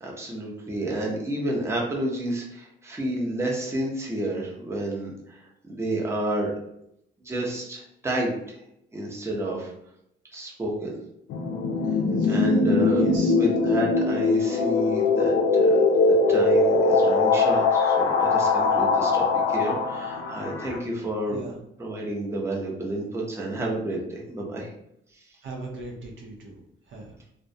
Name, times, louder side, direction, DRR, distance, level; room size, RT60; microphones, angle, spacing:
voice 1, 0.0-5.4 5.7-6.5 7.2-8.5 8.9-9.7 10.3-11.0 12.3-13.0 13.3-15.8 16.3-21.4 21.8-24.7, right 1 dB, 15° right, -2 dB, 0.6 m, -30 dB
sound 1, 11.3-20.8, left 3 dB, 85° left, 0.4 m, -21 dB
voice 2, 12.9-13.3 21.3-21.6 25.4-26.6 26.9-27.2, right 2 dB, 75° right, 0 dB, 0.6 m, -39 dB
2.3 x 2.1 x 2.6 m, 0.76 s
cardioid pair, 90°, 20 cm